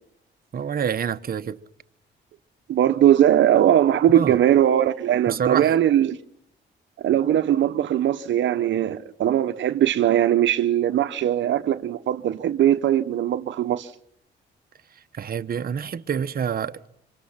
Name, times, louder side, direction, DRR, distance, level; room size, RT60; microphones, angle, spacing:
voice 1, 0.5-1.6 4.1-4.4 5.3-5.7 15.1-17.0, right 7 dB, 50° right, 1.2 m, -27 dB
voice 2, 2.7-6.2 7.0-13.9, right 11 dB, 70° right, 1.1 m, -20 dB
27.0 x 23.5 x 5.9 m
cardioid pair, 90°, 20 cm